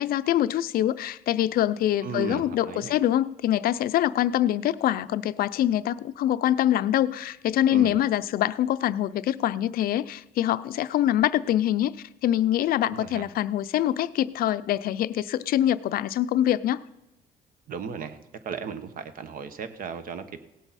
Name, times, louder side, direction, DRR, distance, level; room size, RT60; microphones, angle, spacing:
voice 1, 0.0-12.0 12.2-16.8, left 12 dB, 60° left, 14 dB, 0.5 m, -24 dB
voice 2, 2.0-2.9 7.7-7.9 12.8-13.3 17.7-18.2 18.4-20.4, right 6 dB, 55° right, 11 dB, 1.1 m, -35 dB
17.5 x 8.0 x 4.2 m, 0.94 s
cardioid pair, 110°, 17 cm